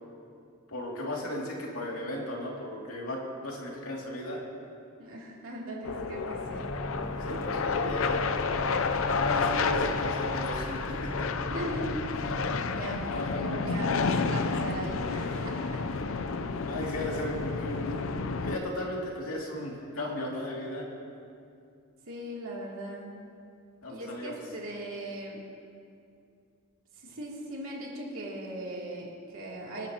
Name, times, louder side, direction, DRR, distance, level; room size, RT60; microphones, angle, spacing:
voice 1, 0.7-4.4 7.0-8.3 9.2-11.3 13.1-13.3 13.6-13.7 16.7-18.0 18.4-20.9 23.8-24.3, left 1 dB, 85° left, -2 dB, 2.5 m, -35 dB
voice 2, 5.0-6.7 7.3-7.7 11.4-12.0 12.4-13.1 13.3-15.8 17.6-17.7 22.1-23.1 23.9-25.4 27.0-29.9, right 1 dB, 70° right, -4 dB, 2.9 m, -39 dB
sound 1, 5.8-18.6, left 4 dB, 65° left, 0.6 m, -30 dB
sound 2, 6.4-12.6, equal, ahead, 1.0 m, -39 dB
27.0 x 10.5 x 2.9 m, 2.4 s
head